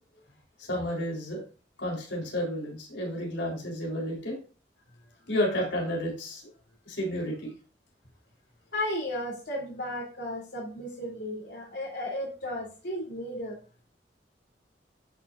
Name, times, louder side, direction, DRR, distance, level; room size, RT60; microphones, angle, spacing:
voice 1, 0.6-1.4 1.8-4.4 5.3-6.4 6.9-7.5, left 1 dB, 90° left, -1 dB, 3.9 m, -31 dB
voice 2, 8.7-13.6, left 1 dB, 65° left, -2 dB, 3.2 m, -34 dB
12.0 x 6.2 x 2.5 m, 0.36 s
head